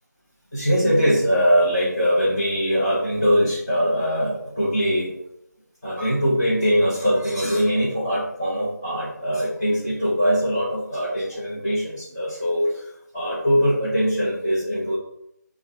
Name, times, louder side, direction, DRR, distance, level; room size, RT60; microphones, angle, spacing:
voice 1, 0.5-5.1 5.8-15.0, equal, 20° left, -13 dB, 1.2 m, -22 dB
4.2 x 2.4 x 4.3 m, 0.79 s
figure-of-eight pair, 180°, 10 cm